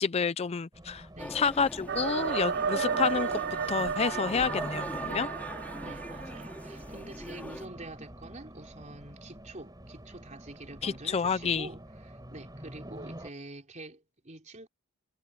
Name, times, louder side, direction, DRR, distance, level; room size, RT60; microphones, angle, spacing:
voice 1, 0.0-3.4 3.7-5.3 10.8-11.7, left 5 dB, 30° left, 0.4 m, -29 dB
Race car auto racing, 0.7-13.3, right 1 dB, 20° right, 5.6 m, -47 dB
sound 1, 1.2-7.7, left 1 dB, 10° left, 2.6 m, -41 dB
sound 2, 1.9-6.7, right 6 dB, 50° right, 0.4 m, -33 dB
voice 2, 5.8-14.7, right 2 dB, 35° right, 4.0 m, -46 dB
head